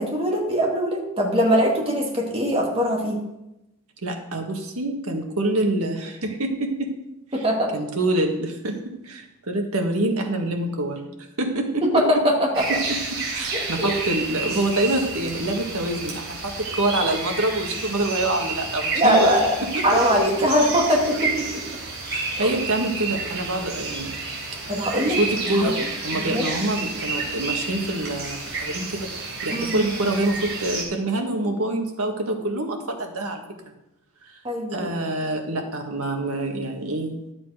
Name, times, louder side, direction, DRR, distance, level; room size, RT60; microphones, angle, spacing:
voice 1, 0.0-3.2 7.3-7.7 11.8-12.6 13.5-13.9 18.9-19.5 19.8-21.6 22.4-22.6 24.7-25.2 25.6-25.7 26.1-26.5 29.5-29.8 34.4-35.0, equal, 25° right, -1 dB, 2.3 m, -21 dB
voice 2, 4.0-6.9 7.4-7.5 7.7-8.8 9.0-11.1 11.4-12.0 12.9-13.0 13.3-19.4 19.7-19.8 22.1-24.1 25.2-25.8 26.0-33.4 34.2-34.4 34.7-37.2, right 1 dB, 80° right, 3 dB, 1.8 m, -26 dB
sound 1, 12.5-30.8, right 3 dB, 60° right, 3.7 m, -30 dB
12.0 x 7.4 x 5.0 m, 0.92 s
head